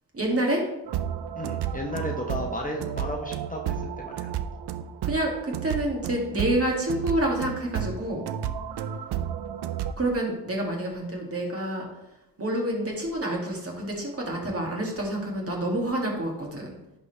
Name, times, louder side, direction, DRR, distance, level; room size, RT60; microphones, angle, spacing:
voice 1, 0.1-0.6 5.0-8.3 10.0-11.8 12.4-16.8, right 1 dB, 35° right, -1 dB, 2.3 m, -28 dB
sound 1, 0.9-9.9, right 9 dB, 70° right, 0.6 m, -32 dB
voice 2, 1.4-4.4, left 1 dB, 20° left, 0 dB, 1.0 m, -34 dB
11.0 x 4.2 x 3.3 m, 0.92 s
cardioid pair, 70°, 41 cm